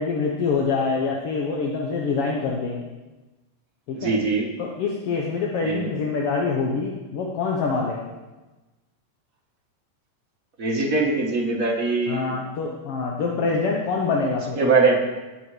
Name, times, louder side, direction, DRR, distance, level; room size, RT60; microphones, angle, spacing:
voice 1, 0.0-2.8 3.9-4.1 4.6-8.1 12.1-14.6, left 4 dB, 60° left, -1 dB, 1.6 m, -25 dB
voice 2, 4.0-4.5 5.6-5.9 10.6-12.3 14.5-15.0, right 3 dB, 40° right, 0 dB, 1.3 m, -22 dB
17.5 x 7.1 x 4.9 m, 1.1 s
omnidirectional pair, 3.8 m